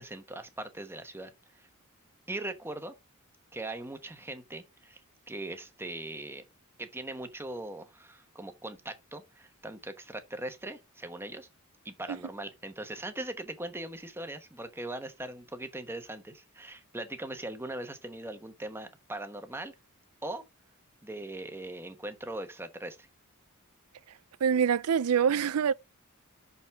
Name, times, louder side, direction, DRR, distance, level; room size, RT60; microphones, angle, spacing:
voice 1, 0.0-1.7 2.3-2.9 3.5-5.0 5.3-6.4 6.8-11.5 11.8-19.7 20.2-20.4 21.0-23.1, right 1 dB, 10° right, 1.1 m, -40 dB
voice 2, 24.4-25.7, right 7 dB, 75° right, 0.5 m, -25 dB
6.3 x 5.8 x 4.7 m
head